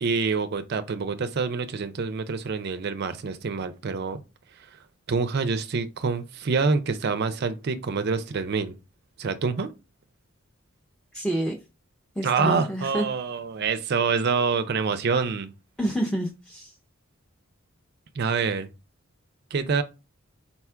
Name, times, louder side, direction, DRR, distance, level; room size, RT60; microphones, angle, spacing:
voice 1, 0.0-4.2 5.1-8.8 9.2-9.7 12.2-15.5 18.2-18.7 19.5-19.8, right 5 dB, 50° right, 0.4 m, -26 dB
voice 2, 11.1-11.6 12.2-13.1 15.8-16.7, right 1 dB, 5° left, 0.6 m, -28 dB
4.1 x 2.3 x 4.3 m
head